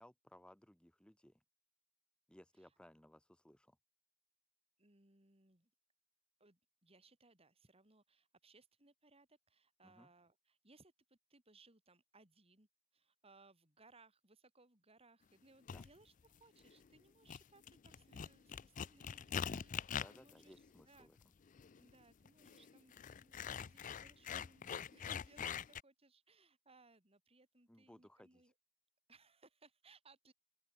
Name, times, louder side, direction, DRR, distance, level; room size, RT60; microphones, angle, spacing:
voice 1, 0.0-1.4 2.3-3.8 9.8-10.1 15.7-15.8 20.0-21.2 27.7-28.4, left 1 dB, 5° left, 0.8 m, -62 dB
voice 2, 4.8-5.7 6.4-20.5 20.8-21.1 21.7-28.5 29.1-30.3, right 3 dB, 30° right, 4.7 m, -67 dB
sound 1, 15.7-15.9 16.6-17.0 17.3-25.8, left 7 dB, 40° left, 0.4 m, -44 dB
open air
head